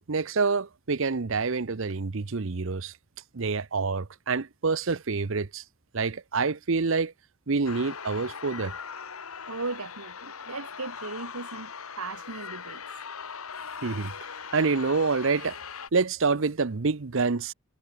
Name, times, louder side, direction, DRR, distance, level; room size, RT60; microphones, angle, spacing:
voice 1, 0.1-2.9 3.3-5.6 5.9-7.1 7.5-8.7 13.8-14.1 14.5-15.6 15.9-17.5, right 4 dB, 60° right, 0.7 m, -27 dB
sound 1, 7.7-15.9, left 6 dB, 75° left, 1.8 m, -40 dB
voice 2, 9.5-11.7 12.0-12.8, right 3 dB, 80° right, 2.1 m, -37 dB
head